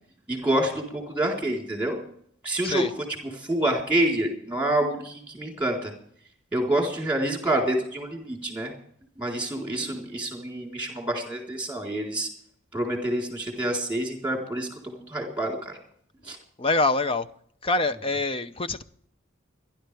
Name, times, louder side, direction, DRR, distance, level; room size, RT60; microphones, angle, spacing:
voice 1, 0.3-2.0 2.4-2.9 3.3-5.9 6.5-8.7 9.2-12.3 12.7-15.8 16.2-16.4, right 1 dB, 5° right, 0 dB, 3.9 m, -27 dB
voice 2, 16.6-17.3 17.6-18.8, left 2 dB, 25° left, 11 dB, 0.6 m, -25 dB
29.5 x 11.5 x 3.4 m, 0.66 s
head